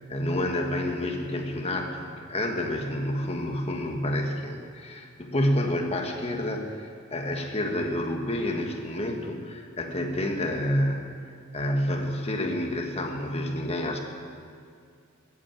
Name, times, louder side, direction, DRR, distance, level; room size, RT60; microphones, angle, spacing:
voice 1, 0.1-11.1 11.5-14.0, left 1 dB, 30° left, 3 dB, 1.5 m, -29 dB
13.5 x 8.7 x 8.8 m, 2.3 s
head